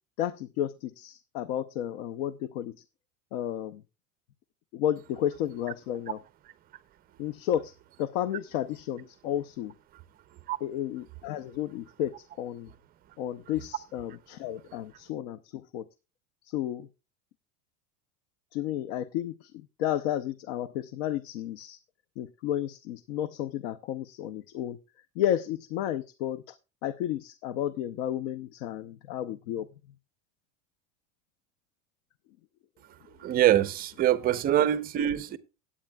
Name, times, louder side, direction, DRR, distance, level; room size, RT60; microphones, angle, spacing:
voice 1, 0.2-2.7 3.3-3.8 4.7-6.2 7.2-7.7 8.0-9.7 10.6-12.7 13.2-15.8 16.4-16.9 18.5-21.8 22.2-24.8 25.2-26.6 26.8-29.7, left 11 dB, 75° left, 0.7 m, -32 dB
voice 2, 33.2-35.4, right 11 dB, 25° right, 0.5 m, -24 dB
17.5 x 8.6 x 2.3 m
cardioid pair, 160°, 37 cm